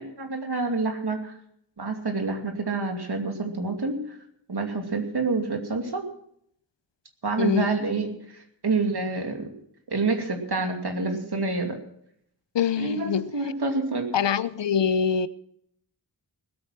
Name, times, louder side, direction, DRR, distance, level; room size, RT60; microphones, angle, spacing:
voice 1, 0.0-1.4 1.8-4.2 4.5-6.0 7.2-9.5 9.9-11.8 12.8-14.1, right 3 dB, 60° right, 4 dB, 2.7 m, -28 dB
voice 2, 7.4-7.7 12.5-13.3 14.1-15.3, left 7 dB, 75° left, 17 dB, 0.7 m, -24 dB
19.5 x 8.9 x 6.0 m, 0.69 s
wide cardioid pair, 70°, 43 cm